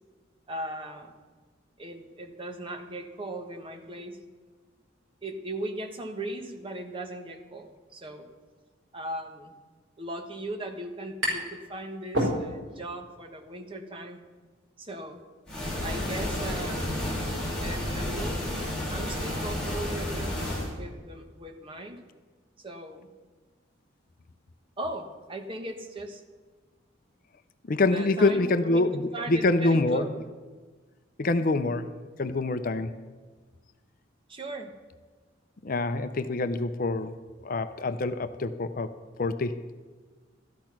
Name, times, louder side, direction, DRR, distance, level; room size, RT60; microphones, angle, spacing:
voice 1, 0.5-1.1 1.8-4.2 5.2-8.3 8.9-9.5 10.0-14.3 14.8-15.3 15.8-17.1 17.6-18.4 18.9-20.3 20.8-22.0 22.6-23.1 24.8-26.2 27.9-30.2 34.3-34.7, right 1 dB, 25° right, 4 dB, 1.2 m, -38 dB
sound 1, 10.6-11.6 11.9-12.9, equal, 75° right, 4.5 m, -29 dB
sound 2, 15.5-20.7, left 1 dB, 5° left, 5.3 m, -31 dB
voice 2, 27.7-30.2 31.2-33.0 35.6-39.6, left 2 dB, 45° left, 11 dB, 0.6 m, -26 dB
13.5 x 10.5 x 5.9 m, 1.4 s
head